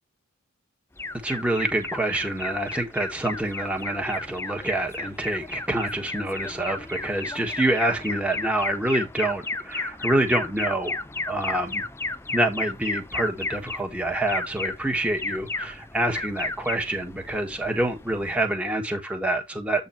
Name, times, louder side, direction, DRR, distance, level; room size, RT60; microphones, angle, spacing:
Alarm, 1.0-18.6, left 3 dB, 10° left, 0.4 m, -34 dB
voice 1, 1.2-11.0 11.3-11.8 12.3-19.9, right 1 dB, 5° right, 1.4 m, -26 dB
8.2 x 3.9 x 4.4 m
head